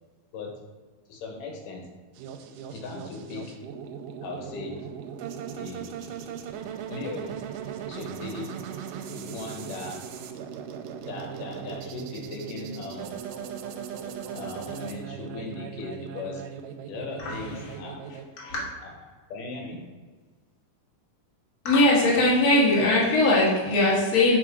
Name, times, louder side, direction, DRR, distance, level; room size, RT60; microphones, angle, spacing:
voice 1, 1.1-1.8 2.7-3.6 4.2-4.9 5.5-6.1 6.9-10.0 11.0-13.1 14.3-16.4 16.9-18.0 18.8-18.9 19.3-19.9, left 3 dB, 80° left, 1 dB, 2.6 m, -38 dB
sound 1, 2.2-18.2, right 8 dB, 85° right, 2.2 m, -38 dB
voice 2, 17.2-17.8 18.4-18.6 21.6-24.4, left 2 dB, 40° left, -5 dB, 1.6 m, -21 dB
7.5 x 3.8 x 4.7 m, 1.4 s
omnidirectional pair, 3.7 m